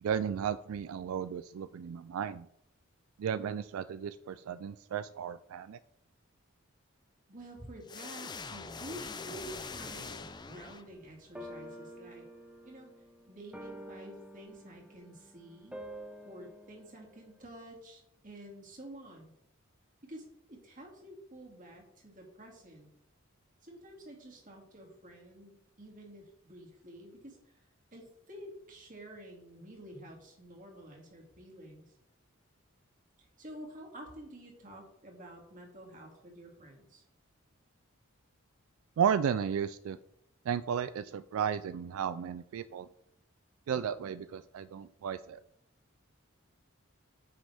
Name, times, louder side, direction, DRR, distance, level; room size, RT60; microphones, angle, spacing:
voice 1, 0.0-2.5 3.2-5.8 39.0-40.0 40.5-42.9 43.7-45.4, right 8 dB, 80° right, 14 dB, 0.3 m, -34 dB
voice 2, 7.3-12.3 12.6-12.9 13.3-15.8 16.2-19.3 20.0-22.9 23.6-27.7 27.9-31.9 33.2-37.0, right 1 dB, 40° right, 0 dB, 2.4 m, -50 dB
sound 1, 7.9-11.2, left 4 dB, 20° left, 0.5 m, -43 dB
sound 2, 10.5-10.6 11.3-17.5, equal, 5° right, 0.9 m, -49 dB
9.4 x 6.2 x 3.5 m, 0.79 s
head